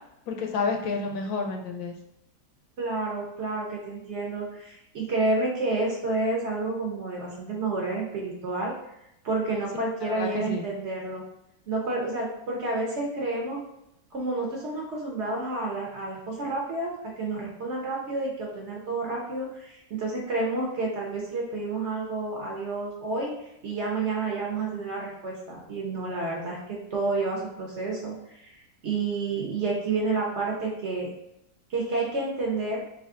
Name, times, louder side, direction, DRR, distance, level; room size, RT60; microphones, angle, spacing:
voice 1, 0.3-1.9 10.0-10.6, left 4 dB, 75° left, 2 dB, 1.1 m, -30 dB
voice 2, 2.8-8.7 9.2-11.2 11.7-13.6 14.1-28.5 28.8-31.1 31.7-32.8, right 3 dB, 55° right, -2 dB, 0.8 m, -30 dB
3.3 x 2.3 x 3.6 m, 0.81 s
omnidirectional pair, 1.7 m